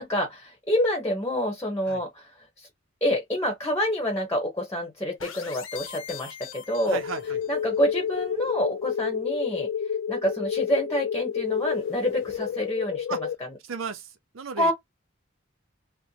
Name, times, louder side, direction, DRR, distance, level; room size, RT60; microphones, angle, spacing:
voice 1, 0.0-2.3 2.6-2.7 3.0-7.0 7.5-9.7 10.1-13.2 14.6-14.7, equal, 15° left, 1.0 m, -27 dB
sound 1, 5.2-7.6, left 7 dB, 90° left, 0.9 m, -42 dB
sound 2, 6.9-13.4, left 8 dB, 70° left, 0.3 m, -30 dB
voice 2, 6.9-7.4 13.1-13.2 13.6-14.7, right 5 dB, 90° right, 0.6 m, -35 dB
4.3 x 2.1 x 2.8 m
head